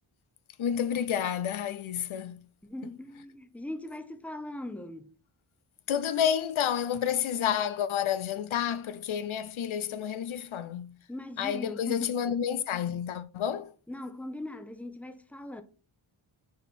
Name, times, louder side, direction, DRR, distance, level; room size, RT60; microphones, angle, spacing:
voice 1, 0.6-2.4 2.8-2.9 5.9-11.0 11.4-13.7, left 9 dB, 75° left, 0.7 m, -30 dB
voice 2, 2.6-5.1 11.1-12.2 13.9-15.6, left 1 dB, 5° left, 0.8 m, -40 dB
6.1 x 4.2 x 4.2 m
cardioid pair, 60°, 48 cm